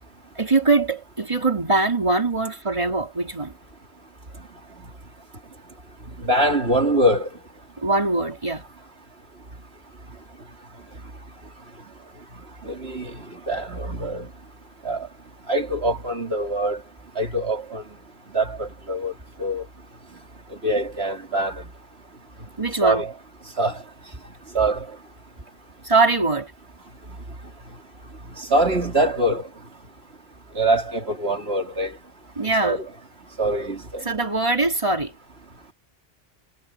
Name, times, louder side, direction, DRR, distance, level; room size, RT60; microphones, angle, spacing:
voice 1, 0.4-3.5 7.8-8.6 22.6-23.0 25.8-26.5 32.4-32.8 34.0-35.1, right 3 dB, 25° right, 2.4 m, -22 dB
voice 2, 6.2-7.3 12.6-13.1 13.5-14.3 14.8-15.1 15.5-16.8 17.2-17.8 18.3-19.1 19.4-19.6 20.6-21.5 22.8-23.1 23.6-23.8 24.5-24.9 28.5-29.5 30.5-31.9 32.6-32.8 33.4-34.0, right 1 dB, 65° right, 3.5 m, -23 dB
omnidirectional pair, 1.2 m